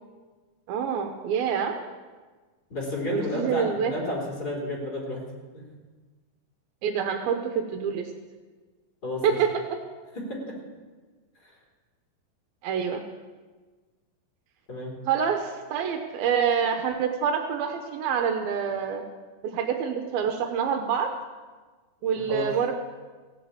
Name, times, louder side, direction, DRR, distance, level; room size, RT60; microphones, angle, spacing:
voice 1, 0.7-1.7 3.1-3.9 6.8-8.1 9.2-9.6 12.6-13.0 15.1-19.0 19.4-21.1 22.0-22.7, right 7 dB, 80° right, 5 dB, 2.7 m, -26 dB
voice 2, 2.7-5.2 5.5-5.6 9.0-9.4 10.1-10.5 14.7-14.9 22.2-22.5, left 1 dB, 25° left, -3 dB, 4.1 m, -31 dB
16.0 x 8.4 x 8.6 m, 1.4 s
omnidirectional pair, 4.3 m